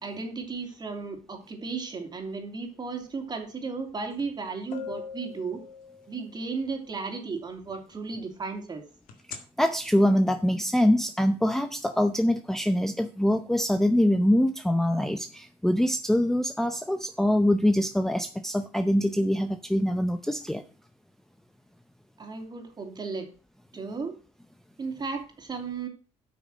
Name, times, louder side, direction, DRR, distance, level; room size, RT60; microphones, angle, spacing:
voice 1, 0.0-5.6 6.1-8.8 22.2-23.3 23.7-24.2 24.8-25.9, right 4 dB, 30° right, 4 dB, 2.9 m, -35 dB
sound 1, 4.2-4.3 4.7-6.5 9.1-9.4, left 7 dB, 80° left, 1.9 m, -40 dB
voice 2, 9.3-20.6, left 1 dB, 5° left, 8 dB, 0.7 m, -24 dB
8.4 x 6.2 x 6.3 m, 0.38 s
cardioid pair, 100°, 14 cm